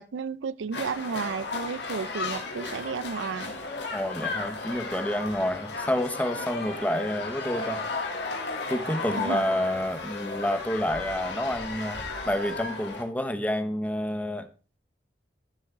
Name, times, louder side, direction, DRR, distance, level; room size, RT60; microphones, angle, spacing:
voice 1, 0.0-3.6 9.1-9.4, right 5 dB, 90° right, 0.4 m, -32 dB
sound 1, 0.7-13.0, left 3 dB, 70° left, 2.6 m, -34 dB
voice 2, 3.9-8.1 8.7-14.5, left 1 dB, 10° left, 0.8 m, -29 dB
14.5 x 7.2 x 3.6 m
head